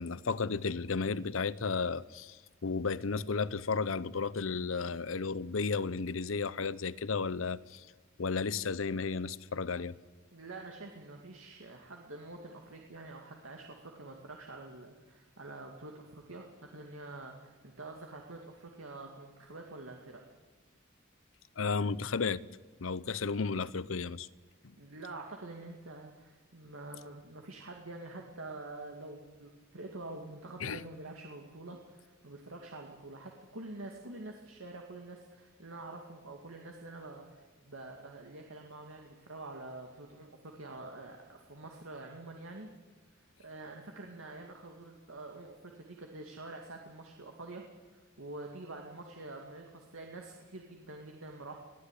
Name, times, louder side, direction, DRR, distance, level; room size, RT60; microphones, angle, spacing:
voice 1, 0.0-7.9 8.2-10.0 21.6-22.4 22.8-24.3 30.6-30.8, left 4 dB, 80° left, 0.8 m, -33 dB
voice 2, 10.3-20.2 24.8-42.7 43.1-51.6, right 2 dB, 85° right, 2.4 m, -47 dB
23.5 x 16.5 x 10.0 m
head